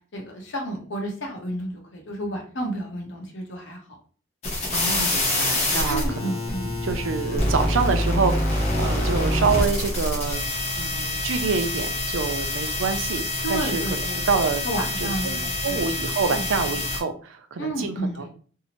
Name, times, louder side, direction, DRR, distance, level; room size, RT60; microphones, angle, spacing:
voice 1, 0.1-4.0 5.9-6.7 13.4-14.2 14.6-15.9 16.3-16.8 17.6-18.3, right 1 dB, 70° left, 1 dB, 0.8 m, -31 dB
sound 1, 4.4-17.0, left 1 dB, 35° left, 0.7 m, -26 dB
voice 2, 4.7-10.4 10.8-13.2 13.5-13.8 14.3-14.6 15.0-18.3, right 5 dB, 90° right, 8 dB, 0.4 m, -27 dB
2.7 x 2.0 x 2.8 m, 0.42 s
head